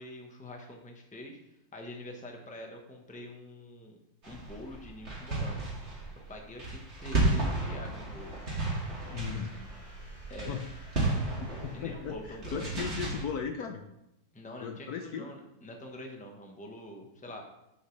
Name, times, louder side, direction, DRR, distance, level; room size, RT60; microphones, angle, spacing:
voice 1, 0.0-1.4 1.7-4.0 4.2-5.7 6.3-8.4 10.3-10.6 11.7-12.7 14.3-17.4, left 1 dB, 5° left, 2 dB, 0.9 m, -45 dB
sound 1, 4.2-13.2, right 2 dB, 35° right, 2.4 m, -33 dB
sound 2, 8.1-12.8, right 1 dB, 25° left, 2.6 m, -53 dB
voice 2, 9.1-9.5 10.5-10.7 11.4-13.8 14.6-15.3, left 7 dB, 70° left, 5 dB, 1.1 m, -37 dB
11.0 x 6.5 x 3.3 m, 0.86 s
omnidirectional pair, 2.0 m